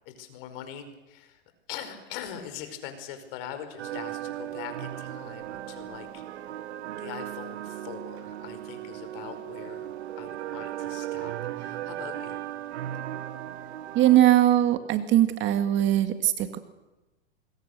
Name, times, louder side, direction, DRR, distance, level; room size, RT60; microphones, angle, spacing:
voice 1, 0.0-1.4 1.7-6.5 7.0-12.4, left 9 dB, 50° left, 9 dB, 5.0 m, -42 dB
sound 1, 3.8-14.2, right 12 dB, 65° right, 1.6 m, -37 dB
voice 2, 13.9-16.6, right 13 dB, 30° right, 9 dB, 2.0 m, -21 dB
26.0 x 22.0 x 6.8 m, 1.1 s
hypercardioid pair, 120°, 36 cm